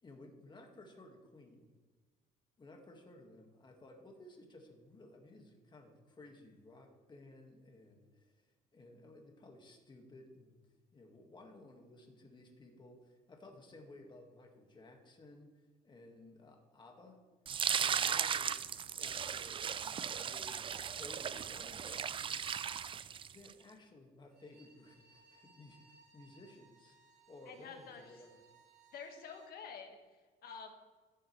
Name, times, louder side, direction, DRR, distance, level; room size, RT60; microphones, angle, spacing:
voice 1, 0.0-1.7 2.6-8.5 8.7-10.6 10.9-15.5 15.8-17.2 17.8-18.6 19.0-20.6 21.0-22.0 23.3-27.0 27.3-28.4, left 2 dB, 25° left, 2 dB, 1.9 m, -56 dB
sound 1, 17.5-23.5, right 8 dB, 30° right, 0.4 m, -36 dB
Bowed string instrument, 24.2-29.6, right 3 dB, 65° right, 3.2 m, -65 dB
voice 2, 27.5-28.2 28.9-29.9 30.4-30.7, left 6 dB, 65° left, 4 dB, 1.8 m, -48 dB
14.5 x 7.8 x 3.3 m, 1.4 s
cardioid pair, 110°, 17 cm